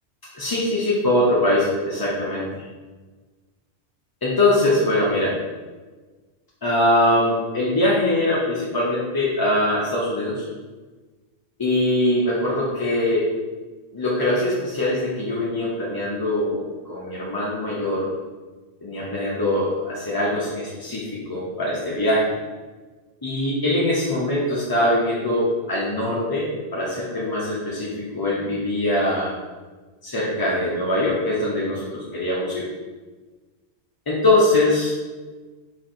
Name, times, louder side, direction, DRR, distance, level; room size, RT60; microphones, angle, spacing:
voice 1, 0.3-2.6 4.2-5.3 6.6-10.4 11.6-13.3 13.9-18.1 18.8-22.3 23.2-29.3 30.0-32.7 34.1-34.9, left 1 dB, 30° left, -7 dB, 0.5 m, -22 dB
4.3 x 4.1 x 2.5 m, 1.3 s
omnidirectional pair, 1.1 m